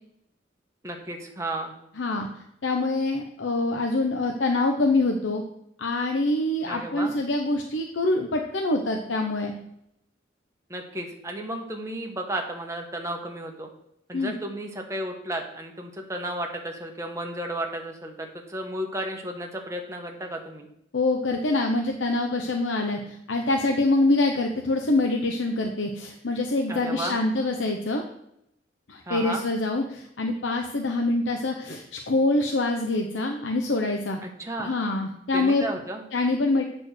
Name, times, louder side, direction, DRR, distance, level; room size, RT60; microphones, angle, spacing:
voice 1, 0.8-1.7 6.6-7.1 10.7-13.7 14.1-20.7 26.7-27.2 29.1-29.4 34.2-34.8 35.3-36.0, right 1 dB, 15° right, 2 dB, 1.2 m, -33 dB
voice 2, 2.0-2.3 2.6-5.4 5.8-9.5 14.1-14.3 20.9-28.0 28.9-34.2 34.6-35.6 36.1-36.6, left 2 dB, 85° left, 3 dB, 0.8 m, -25 dB
8.6 x 4.3 x 6.4 m, 0.77 s
head